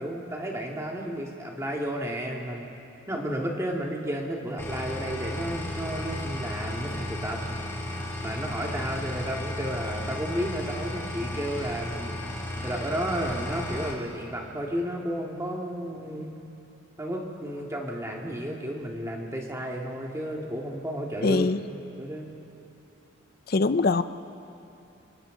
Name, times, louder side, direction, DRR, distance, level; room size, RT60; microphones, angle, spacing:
voice 1, 0.0-2.7 3.1-7.4 8.2-12.2 12.6-16.3 17.0-21.5 22.0-22.3, equal, 15° right, -1 dB, 2.0 m, -32 dB
sound 1, 4.6-13.9, left 1 dB, 10° left, 2.7 m, -34 dB
voice 2, 21.2-21.6 23.5-24.0, left 3 dB, 45° left, 12 dB, 0.5 m, -22 dB
26.5 x 25.0 x 3.9 m, 2.8 s
head